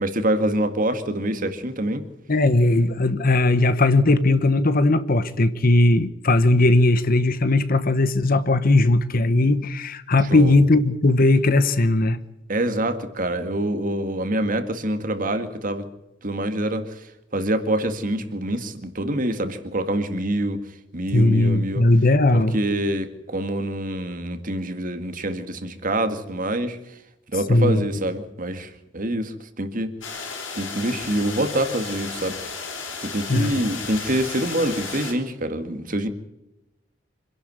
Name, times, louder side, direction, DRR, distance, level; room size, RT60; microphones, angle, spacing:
voice 1, 0.0-2.1 10.2-10.6 12.5-15.8 16.2-17.0 17.3-20.6 20.9-21.9 22.3-26.8 27.3-29.9 30.6-32.4 33.0-36.1, right 1 dB, 45° right, 9 dB, 1.9 m, -26 dB
voice 2, 2.3-12.2 21.1-22.6 27.5-27.8 33.3-33.6, left 2 dB, 50° left, 14 dB, 1.0 m, -18 dB
sound 1, 30.0-35.1, left 5 dB, 80° left, 4.8 m, -34 dB
26.0 x 11.5 x 9.5 m, 0.93 s
head